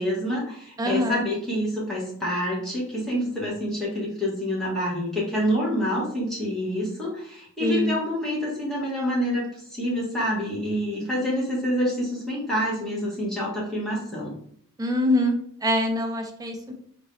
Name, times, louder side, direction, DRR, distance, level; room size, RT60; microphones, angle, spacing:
voice 1, 0.0-9.5 9.7-14.4, equal, ahead, -7 dB, 1.3 m, -27 dB
voice 2, 0.8-1.3 7.6-8.0 14.8-16.7, left 1 dB, 15° right, 3 dB, 0.5 m, -24 dB
3.9 x 2.6 x 3.1 m, 0.64 s
head